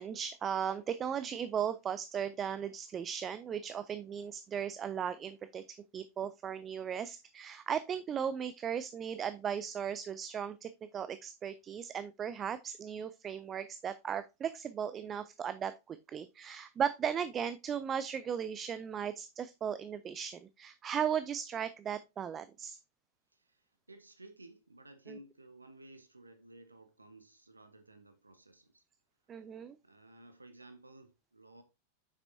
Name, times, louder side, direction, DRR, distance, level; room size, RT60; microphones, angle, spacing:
voice 1, 0.0-22.8 25.1-25.2 29.3-29.8, right 8 dB, 25° right, 0.4 m, -37 dB
voice 2, 23.3-28.8 29.8-31.6, right 1 dB, 80° right, 0.7 m, -56 dB
7.4 x 6.0 x 2.6 m
figure-of-eight pair, 90°, 0 cm